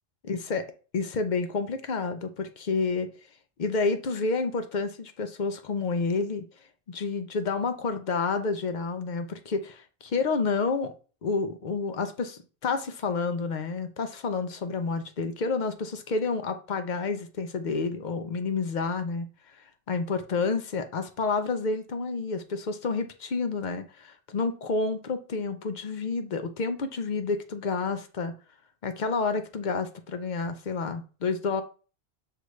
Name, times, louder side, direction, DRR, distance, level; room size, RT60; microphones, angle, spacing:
voice 1, 0.2-0.6 0.9-3.1 3.6-6.4 6.9-10.9 11.2-19.3 19.9-28.3 28.8-31.6, left 4 dB, 55° left, 0.6 m, -29 dB
6.5 x 2.5 x 3.2 m
omnidirectional pair, 1.1 m